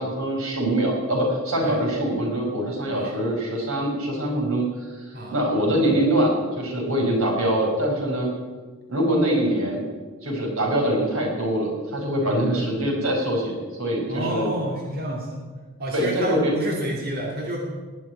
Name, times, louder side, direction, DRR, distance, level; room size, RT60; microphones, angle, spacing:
voice 1, 0.0-8.3 8.9-9.8 10.2-14.5 15.9-16.5, right 1 dB, 85° right, 0 dB, 5.6 m, -24 dB
voice 2, 14.1-15.4 15.8-17.6, equal, 45° right, -3 dB, 2.6 m, -29 dB
19.5 x 7.4 x 9.5 m, 1.4 s
head